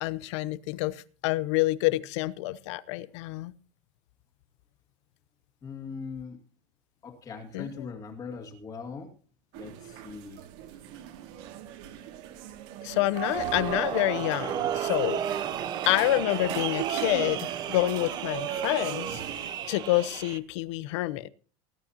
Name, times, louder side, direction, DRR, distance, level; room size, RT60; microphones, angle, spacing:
voice 1, 0.0-3.5 7.5-7.9 12.8-15.5 15.9-21.3, left 17 dB, 60° left, 0.8 m, -28 dB
voice 2, 5.6-6.4 7.0-9.1 9.5-10.4 13.4-13.6, left 5 dB, 20° left, 2.3 m, -40 dB
sound 1, 9.5-19.5, right 10 dB, 50° right, 2.2 m, -41 dB
sound 2, 13.2-20.4, right 10 dB, 25° right, 0.7 m, -32 dB
19.5 x 12.0 x 2.8 m
supercardioid pair, 175°, 17 cm